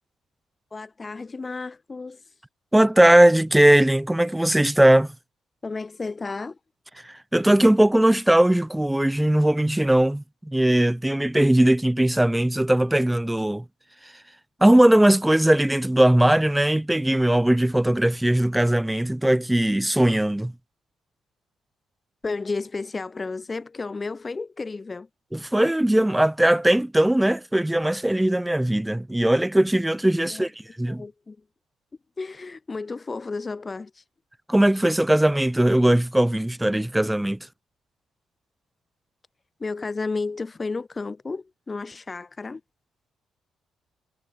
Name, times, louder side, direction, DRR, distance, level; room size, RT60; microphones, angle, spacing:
voice 1, 0.7-2.2 5.6-6.6 22.2-25.1 30.3-30.5 30.9-31.4 32.2-34.0 39.6-42.6, left 3 dB, 25° left, 0.9 m, -32 dB
voice 2, 2.7-5.1 7.0-13.6 14.0-14.1 14.6-20.5 25.3-30.5 30.8-31.0 34.5-37.4, right 1 dB, 5° right, 0.4 m, -19 dB
cardioid pair, 90°, 0 cm